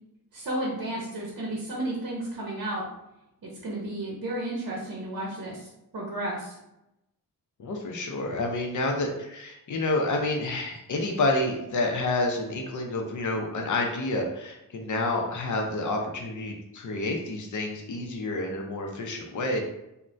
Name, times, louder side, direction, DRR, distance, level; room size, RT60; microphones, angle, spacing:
voice 1, 0.3-2.8 3.4-5.7 5.9-6.6, right 1 dB, 60° right, -4 dB, 0.7 m, -32 dB
voice 2, 7.6-19.6, left 2 dB, 55° left, 2 dB, 0.5 m, -29 dB
3.2 x 2.1 x 2.5 m, 0.88 s
wide cardioid pair, 175°, 35 cm